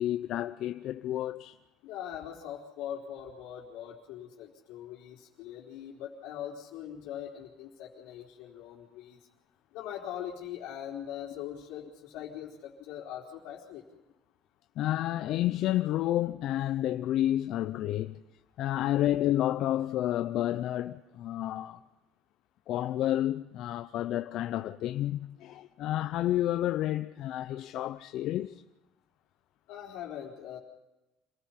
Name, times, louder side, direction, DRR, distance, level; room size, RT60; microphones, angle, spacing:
voice 1, 0.0-1.6 14.8-18.2 18.6-21.8 22.7-28.6, left 13 dB, 50° left, 0.6 m, -30 dB
voice 2, 1.8-9.2 9.7-14.0 29.7-30.6, left 10 dB, 65° left, 3.8 m, -41 dB
27.0 x 18.0 x 5.8 m
cardioid pair, 165°, 0 cm